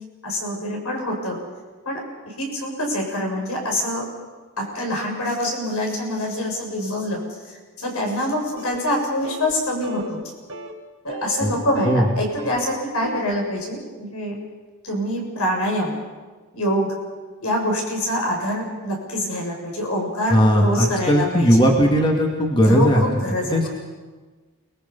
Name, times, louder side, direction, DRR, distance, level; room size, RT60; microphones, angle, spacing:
voice 1, 0.2-1.4 1.8-2.0 2.3-4.1 4.6-7.2 7.4-10.2 11.0-14.4 14.8-15.9 16.5-16.9 17.4-21.7 22.6-23.7, left 1 dB, 80° left, 1 dB, 6.6 m, -25 dB
sound 1, 8.6-9.0 9.2-9.5 9.8-10.2 10.5-10.7 11.1-12.1 12.4-13.3, right 2 dB, 70° right, 1.9 m, -35 dB
voice 2, 20.3-23.0 23.5-23.7, equal, 20° left, 0 dB, 2.1 m, -17 dB
29.0 x 20.5 x 5.5 m, 1.3 s
head